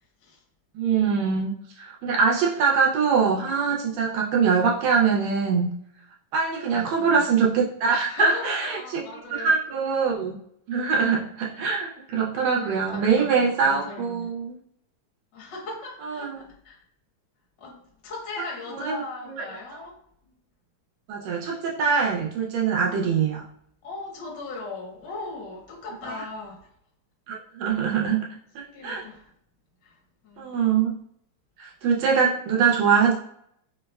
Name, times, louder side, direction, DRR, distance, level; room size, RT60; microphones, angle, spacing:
voice 1, 0.7-1.5 1.8-5.7 6.3-9.0 9.3-10.3 10.7-14.6 16.0-16.4 18.8-19.0 19.3-19.4 21.1-23.4 26.0-26.2 27.3-28.2 28.5-29.0 30.4-30.9 31.6-33.1, right 5 dB, 75° right, 1.6 m, -23 dB
voice 2, 6.7-7.3 8.1-9.6 12.6-14.3 15.3-16.8 17.6-20.0 20.2-20.4 22.9-23.1 23.8-26.7 28.6-29.3 29.8-30.5, left 3 dB, 65° left, 1.1 m, -38 dB
5.2 x 2.1 x 2.2 m
omnidirectional pair, 3.5 m